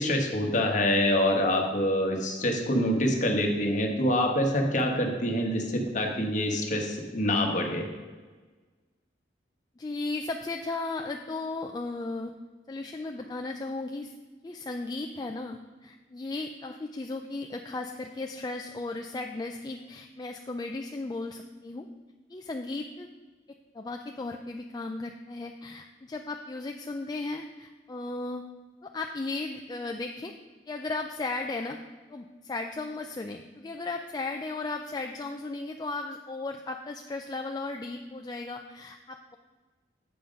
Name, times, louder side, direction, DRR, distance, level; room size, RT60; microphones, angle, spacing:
voice 1, 0.0-7.9, left 1 dB, 40° left, 2 dB, 1.2 m, -26 dB
voice 2, 9.8-12.3 12.7-14.1 14.4-21.9 22.3-23.1 23.5-28.4 28.8-30.3 30.7-31.8 32.1-39.4, left 3 dB, 20° left, 4 dB, 0.3 m, -35 dB
8.0 x 5.7 x 5.2 m, 1.4 s
head